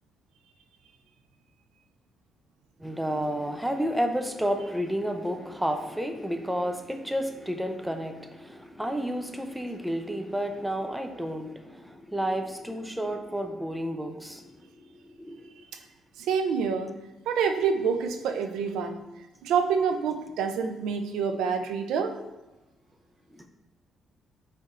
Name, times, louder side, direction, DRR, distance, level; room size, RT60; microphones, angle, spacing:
voice 1, 2.8-14.5 14.9-15.5 23.3-23.4, equal, 5° right, 6 dB, 0.5 m, -31 dB
voice 2, 16.2-16.9 17.3-19.0 19.4-22.2, right 6 dB, 85° right, 7 dB, 0.4 m, -27 dB
4.8 x 4.2 x 2.5 m, 1.1 s
cardioid pair, 90°, 0 cm